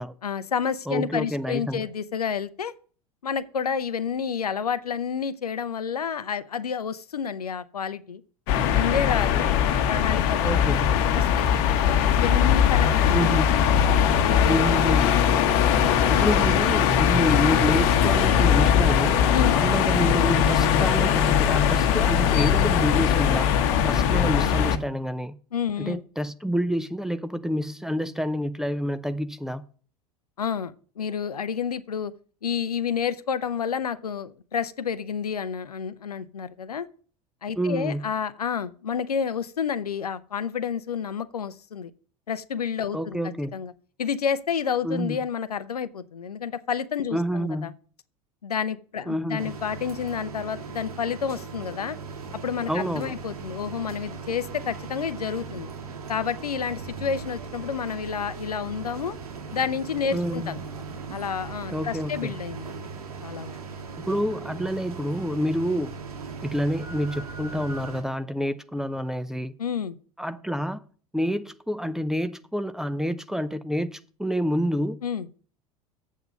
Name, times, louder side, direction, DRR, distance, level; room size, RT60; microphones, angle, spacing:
voice 1, 0.2-2.7 3.2-8.2 8.7-9.5 9.9-10.9 11.1-13.2 15.0-15.6 15.9-16.3 19.3-19.6 25.5-26.0 30.4-32.1 32.4-36.9 37.4-41.9 42.3-43.2 43.5-43.7 44.0-47.7 48.4-52.0 52.4-55.7 56.1-59.2 59.5-60.6 61.1-62.9 63.2-63.5 69.6-70.0 75.0-75.3, left 7 dB, 85° left, 0.5 m, -30 dB
voice 2, 0.9-1.9 10.4-10.9 13.1-13.6 14.5-15.2 16.1-19.2 19.5-25.4 25.8-29.6 37.6-38.0 42.9-43.5 44.8-45.2 47.1-47.7 49.1-49.5 52.7-53.1 60.1-60.5 61.7-62.3 64.0-65.9 66.4-69.5 70.2-70.9 71.1-75.0, equal, ahead, 0.6 m, -28 dB
sound 1, 8.5-24.8, left 8 dB, 55° left, 1.0 m, -20 dB
sound 2, 49.4-68.0, right 5 dB, 75° right, 1.7 m, -38 dB
8.0 x 7.4 x 5.2 m
figure-of-eight pair, 75°, 19 cm